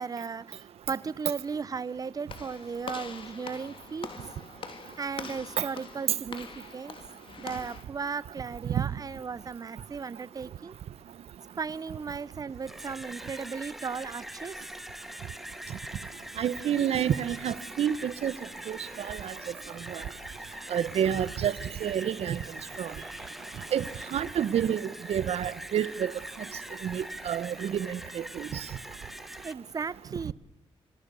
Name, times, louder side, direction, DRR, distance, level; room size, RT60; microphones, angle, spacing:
voice 1, 0.0-4.1 5.0-7.0 7.4-10.8 11.6-14.7 29.4-30.3, right 5 dB, 35° right, 0.7 m, -36 dB
Walk footsteps / Slam, 2.3-7.8, left 5 dB, 55° left, 2.7 m, -43 dB
sound 1, 12.5-29.5, equal, ahead, 1.3 m, -43 dB
voice 2, 16.4-18.3 18.7-19.3 19.9-20.0 20.7-21.5 21.8-22.4 22.8-22.9 23.7-26.1 26.8-28.6, right 9 dB, 70° right, 0.9 m, -29 dB
27.0 x 19.0 x 6.8 m
cardioid pair, 100°, 11 cm